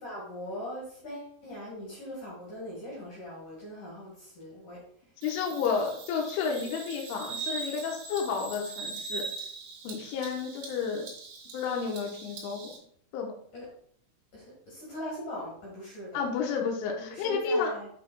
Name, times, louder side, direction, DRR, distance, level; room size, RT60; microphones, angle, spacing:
voice 1, 0.0-4.8 13.5-13.7 14.3-16.3 17.0-17.9, left 1 dB, 55° left, -4 dB, 2.5 m, -40 dB
voice 2, 5.2-9.2 9.8-11.1 11.5-12.7 13.1-13.3 16.1-17.7, left 5 dB, 75° left, 1 dB, 3.3 m, -31 dB
Bird vocalization bird call bird song, 5.2-12.8, right 4 dB, 60° right, 3.6 m, -41 dB
9.3 x 5.7 x 2.3 m, 0.62 s
omnidirectional pair, 6.0 m